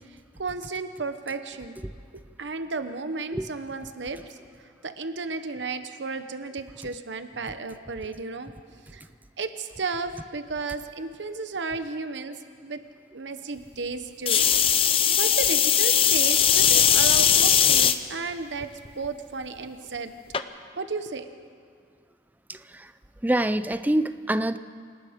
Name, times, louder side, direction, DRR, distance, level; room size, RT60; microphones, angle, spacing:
voice 1, 0.1-1.8 2.4-4.4 4.8-8.5 8.9-9.0 9.4-12.8 13.1-14.4 15.2-18.7 19.0-20.1 20.8-21.3, right 4 dB, 85° right, 9 dB, 1.0 m, -33 dB
sound 1, 14.3-18.0 18.6-19.1 20.3-20.4, left 9 dB, 30° left, 0.6 m, -19 dB
voice 2, 22.5-22.9 23.2-24.6, right 1 dB, 10° right, 12 dB, 0.4 m, -25 dB
28.0 x 18.5 x 5.1 m, 2.1 s
head